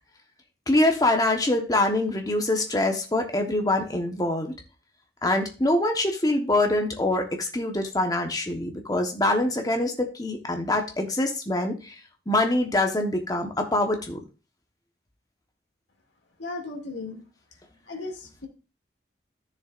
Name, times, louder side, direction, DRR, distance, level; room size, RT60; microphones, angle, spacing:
voice 1, 0.7-4.5 5.2-12.0 12.3-14.2, left 1 dB, 20° left, 3 dB, 1.2 m, -24 dB
voice 2, 16.4-17.2 17.9-18.5, left 3 dB, 80° left, 2 dB, 2.4 m, -36 dB
13.0 x 6.9 x 2.5 m, 0.33 s
head